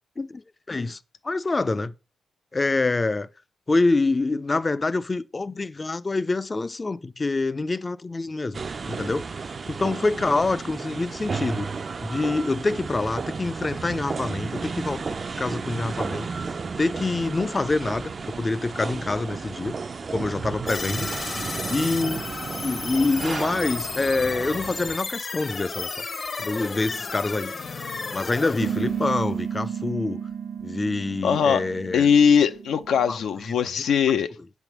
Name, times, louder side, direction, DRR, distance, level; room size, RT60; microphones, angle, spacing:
voice 1, 0.7-1.0 1.2-1.9 2.5-3.3 3.7-8.6 8.9-9.2 9.7-11.7 12.0-15.0 15.4-16.3 16.8-19.8 20.1-21.1 21.7-22.2 22.6-25.9 26.4-27.5 28.1-30.2 30.6-32.1 33.1-33.2, left 3 dB, 30° left, 0.4 m, -26 dB
sound 1, 8.5-25.0, right 4 dB, 45° right, 0.4 m, -33 dB
sound 2, 20.7-29.9, left 4 dB, 45° left, 0.9 m, -34 dB
sound 3, 28.6-33.5, right 8 dB, 75° right, 1.1 m, -32 dB
voice 2, 31.2-31.7 31.9-34.3, left 7 dB, 80° left, 0.6 m, -20 dB
7.7 x 3.5 x 6.0 m
cardioid pair, 85°, 0 cm